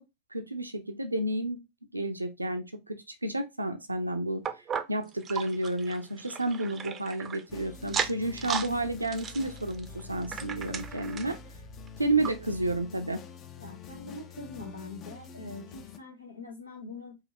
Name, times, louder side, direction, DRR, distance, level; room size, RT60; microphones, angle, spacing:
voice 1, 0.3-1.6 1.9-11.4 12.0-13.2, right 1 dB, 85° right, 0.6 m, -31 dB
sound 1, 4.4-7.4 7.8-8.7 9.0-11.4 11.9-12.0 12.2-12.3 13.0-13.1, right 7 dB, 25° right, 0.6 m, -35 dB
sound 2, 7.5-16.0, left 5 dB, 30° left, 0.6 m, -46 dB
voice 2, 13.6-17.2, left 2 dB, 80° left, 1.1 m, -43 dB
4.9 x 2.8 x 2.9 m
figure-of-eight pair, 90°, 0 cm